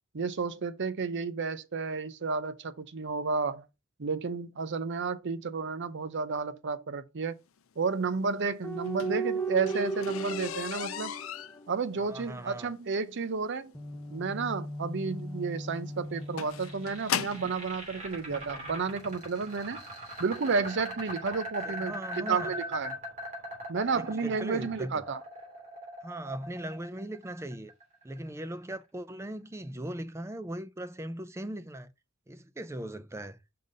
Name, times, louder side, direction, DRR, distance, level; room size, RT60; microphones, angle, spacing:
voice 1, 0.1-3.6 4.0-7.3 7.8-11.1 11.7-13.7 14.1-19.8 20.2-23.0 23.7-25.2, right 4 dB, 55° right, 0.6 m, -32 dB
sound 1, 8.6-12.3 13.7-17.5 18.3-19.5, right 3 dB, 10° left, 0.8 m, -37 dB
sound 2, 8.7-17.6 18.5-18.6 19.2-19.4 19.7-19.8 20.1-20.2, left 9 dB, 70° left, 0.5 m, -38 dB
voice 2, 12.0-12.7 21.6-22.6 23.9-25.0 26.0-27.7 28.0-31.9 32.3-33.4, right 1 dB, 15° right, 0.4 m, -39 dB
sound 3, 16.2-28.3, equal, 35° right, 3.0 m, -41 dB
5.7 x 3.9 x 5.2 m
head